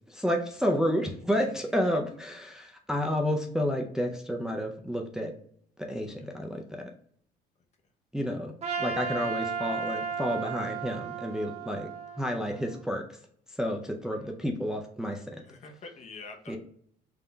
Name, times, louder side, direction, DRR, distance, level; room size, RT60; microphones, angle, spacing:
voice 1, 0.1-5.3 5.8-6.9 8.1-11.9 12.2-13.0 13.5-15.4 16.5-16.6, equal, 5° right, 1 dB, 0.4 m, -30 dB
Trumpet, 8.6-12.9, right 6 dB, 40° right, 0.9 m, -35 dB
voice 2, 15.4-16.6, left 3 dB, 40° left, 4 dB, 0.7 m, -46 dB
3.6 x 2.2 x 3.9 m, 0.63 s
cardioid pair, 110°, 17 cm